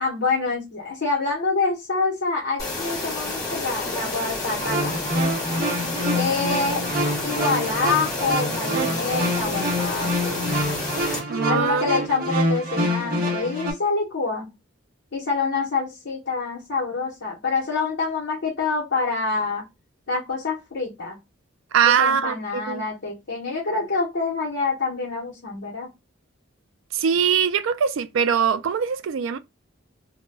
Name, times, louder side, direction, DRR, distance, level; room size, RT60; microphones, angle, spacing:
voice 1, 0.0-5.0 6.1-6.8 7.2-10.6 11.5-14.5 15.1-19.6 20.1-21.2 22.0-25.9, left 4 dB, 65° left, 0.8 m, -26 dB
sound 1, 2.6-11.2, left 2 dB, 20° left, 1.0 m, -30 dB
sound 2, 4.5-13.7, equal, 45° right, 0.9 m, -26 dB
voice 2, 11.3-11.9 21.7-22.8 26.9-29.4, right 7 dB, 80° right, 0.3 m, -22 dB
2.2 x 2.1 x 3.2 m
head